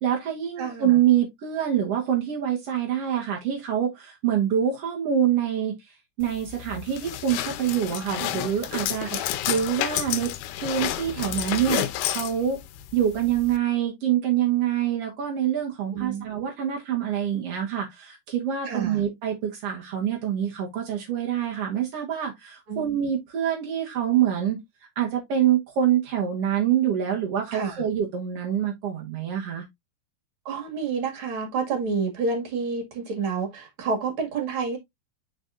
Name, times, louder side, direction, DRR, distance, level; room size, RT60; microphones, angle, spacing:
voice 1, 0.0-5.8 6.2-10.3 10.6-12.6 12.9-24.6 24.9-29.6, right 10 dB, 70° right, 1.4 m, -25 dB
voice 2, 0.6-1.0 9.1-9.3 15.9-16.2 18.7-19.0 22.7-23.0 27.5-27.8 30.5-34.8, right 5 dB, 40° right, 2.1 m, -29 dB
sound 1, 6.2-13.6, left 13 dB, 85° left, 2.6 m, -31 dB
8.3 x 5.3 x 2.5 m
omnidirectional pair, 4.7 m